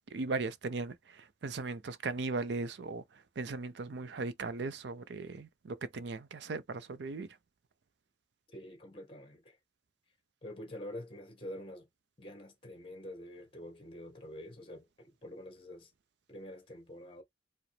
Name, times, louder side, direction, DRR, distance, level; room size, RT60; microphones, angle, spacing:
voice 1, 0.1-7.4, right 3 dB, 65° right, 0.5 m, -38 dB
voice 2, 8.5-9.6 10.4-11.9 12.2-15.9 16.3-17.2, left 1 dB, 30° left, 1.6 m, -47 dB
4.9 x 2.0 x 3.2 m
head